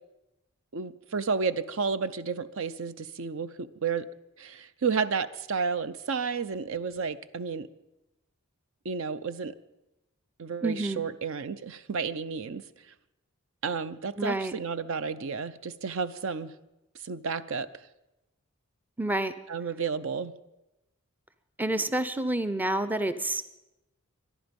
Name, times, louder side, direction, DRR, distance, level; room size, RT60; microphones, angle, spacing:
voice 1, 0.7-4.1 4.4-7.7 8.8-9.5 10.4-12.6 13.6-16.5 17.0-17.7 19.5-20.3, right 5 dB, 60° right, 14 dB, 0.6 m, -31 dB
voice 2, 10.6-11.0 14.2-14.5 19.0-19.3 21.6-23.4, right 1 dB, 10° right, 11 dB, 0.5 m, -28 dB
24.0 x 11.0 x 5.3 m, 0.96 s
head